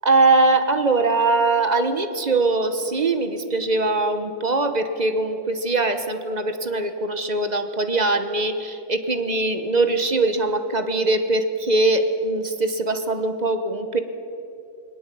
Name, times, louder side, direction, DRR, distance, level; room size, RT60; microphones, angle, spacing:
voice 1, 0.0-14.0, right 2 dB, 30° right, 8 dB, 0.8 m, -21 dB
20.5 x 18.5 x 8.5 m, 2.8 s
omnidirectional pair, 2.1 m